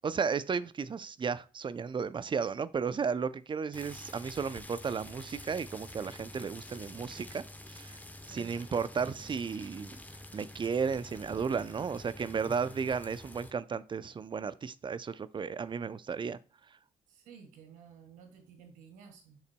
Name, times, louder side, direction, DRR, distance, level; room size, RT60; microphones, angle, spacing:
voice 1, 0.0-8.0 8.3-10.0 10.3-16.4, right 6 dB, 35° right, 0.6 m, -34 dB
sound 1, 3.7-13.5, left 1 dB, 10° left, 1.0 m, -48 dB
voice 2, 6.6-7.2 8.2-8.6 17.1-19.4, right 6 dB, 75° right, 1.7 m, -55 dB
8.0 x 6.6 x 2.3 m
hypercardioid pair, 45°, 14 cm